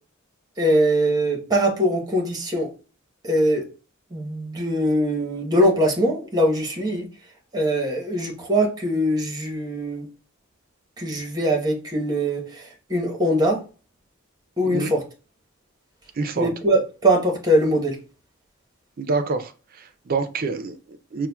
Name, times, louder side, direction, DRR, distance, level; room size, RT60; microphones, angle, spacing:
voice 1, 0.6-2.7 3.2-3.7 4.1-7.1 7.5-10.1 11.0-13.6 14.6-15.0 16.3-18.0, equal, 20° right, 0.9 m, -22 dB
voice 2, 16.2-16.5 19.0-19.5 19.8-21.3, right 4 dB, 45° right, 0.4 m, -26 dB
5.6 x 2.1 x 2.2 m
head